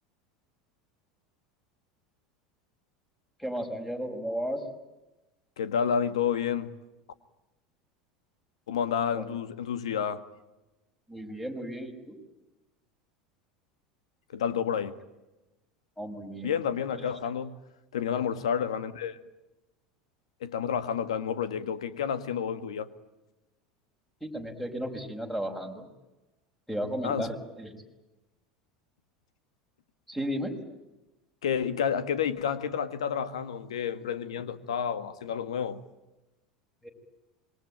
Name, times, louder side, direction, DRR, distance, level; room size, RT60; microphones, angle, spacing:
voice 1, 3.4-4.6 9.1-9.2 11.1-12.2 16.0-16.6 24.2-25.8 26.7-27.7 30.1-30.6 36.8-36.9, equal, 5° left, 5.8 m, -34 dB
voice 2, 5.6-6.7 8.7-10.2 14.3-15.0 16.4-17.5 17.9-19.2 20.4-22.9 27.0-27.3 31.4-35.8, left 7 dB, 75° left, 1.9 m, -30 dB
27.0 x 22.5 x 9.0 m
hypercardioid pair, 80°, 3 cm